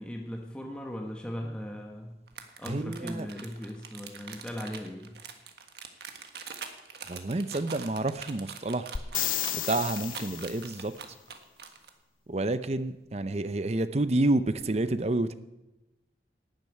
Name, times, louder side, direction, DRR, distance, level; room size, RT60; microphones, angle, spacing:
voice 1, 0.0-2.1 2.6-5.1, equal, 5° left, 0 dB, 1.2 m, -38 dB
sound 1, 2.3-11.9, right 6 dB, 65° right, 1.5 m, -43 dB
voice 2, 2.7-3.3 7.1-8.9 9.5-10.9 12.3-15.3, right 2 dB, 35° right, 13 dB, 0.6 m, -29 dB
sound 2, 9.0-10.8 14.6-14.7, left 12 dB, 50° left, 0.4 m, -32 dB
12.0 x 8.9 x 9.3 m, 1.0 s
head